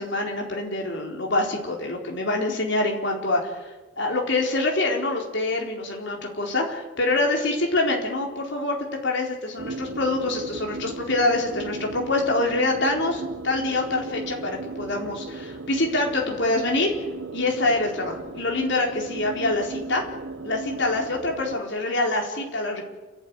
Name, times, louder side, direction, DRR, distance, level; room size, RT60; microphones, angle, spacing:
voice 1, 0.0-8.8 9.0-16.9 17.3-20.0 20.4-22.8, left 2 dB, 55° left, 1 dB, 4.2 m, -25 dB
sound 1, 9.6-21.6, right 3 dB, 60° right, 1.1 m, -36 dB
29.5 x 12.0 x 9.8 m, 1.2 s
head